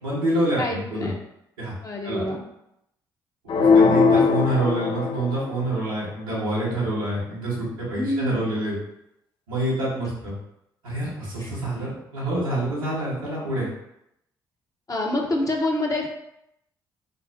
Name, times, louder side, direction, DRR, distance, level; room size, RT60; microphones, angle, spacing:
voice 1, 0.0-1.1 1.6-1.7 2.0-2.3 3.5-8.7 9.5-10.3 10.8-13.7, right 1 dB, 90° right, -9 dB, 1.5 m, -27 dB
voice 2, 0.6-1.1 1.8-2.4 3.7-4.5 7.9-8.4 11.4-11.5 14.9-16.1, left 1 dB, 35° left, 0 dB, 1.0 m, -27 dB
sound 1, 3.5-5.6, left 5 dB, 50° left, 0.4 m, -19 dB
5.4 x 2.1 x 2.7 m, 0.80 s
hypercardioid pair, 45°, 11 cm